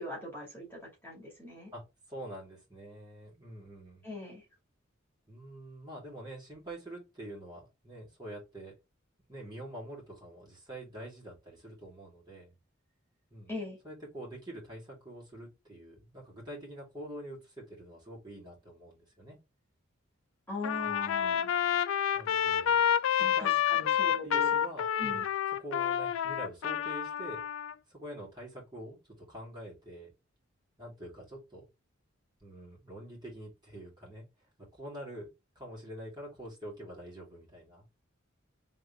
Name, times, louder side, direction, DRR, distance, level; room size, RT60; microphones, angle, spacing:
voice 1, 0.0-1.7 4.0-4.4 13.5-13.8 20.5-21.5 23.2-24.4 25.0-25.3, left 2 dB, 10° left, -4 dB, 2.2 m, -40 dB
voice 2, 2.1-4.1 5.3-8.7 9.3-12.5 13.3-13.5 13.8-19.4 20.8-21.4 22.1-22.8 23.1-23.9 24.2-24.8 25.1-25.3 25.6-27.5 27.9-30.1 30.8-31.7 32.4-34.3 34.6-35.3 35.5-37.9, right 1 dB, 20° right, -5 dB, 2.7 m, -45 dB
Trumpet, 20.6-27.7, left 9 dB, 80° left, 0.4 m, -29 dB
3.7 x 3.6 x 3.5 m, 0.24 s
head